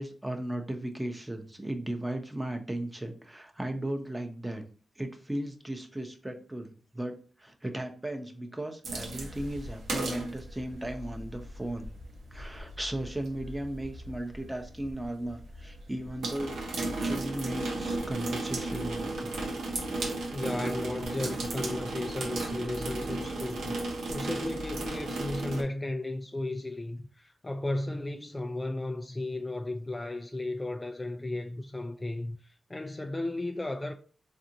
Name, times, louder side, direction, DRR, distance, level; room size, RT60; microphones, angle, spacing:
voice 1, 0.0-4.6 5.0-11.9 12.3-19.4, right 1 dB, 15° right, 0.8 m, -36 dB
sound 1, 8.8-25.6, right 2 dB, 90° right, 0.8 m, -35 dB
voice 2, 20.3-33.9, left 2 dB, 25° left, 0.4 m, -35 dB
4.1 x 2.5 x 2.8 m
cardioid pair, 50°, 0 cm